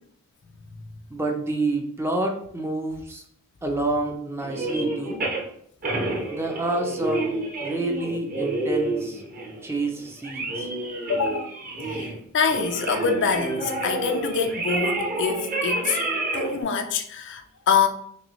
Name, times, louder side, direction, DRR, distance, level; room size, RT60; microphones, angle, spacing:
voice 1, 1.1-3.2 3.6-5.2 6.3-7.3 7.6-9.2 9.6-10.7, right 2 dB, 10° right, 0.5 m, -28 dB
sound 1, 4.4-5.4 5.8-12.2 12.5-16.6, right 2 dB, 40° right, 1.0 m, -29 dB
voice 2, 11.1-11.5 11.9-16.0 16.3-17.9, left 6 dB, 55° left, 0.4 m, -25 dB
5.3 x 2.3 x 3.0 m
head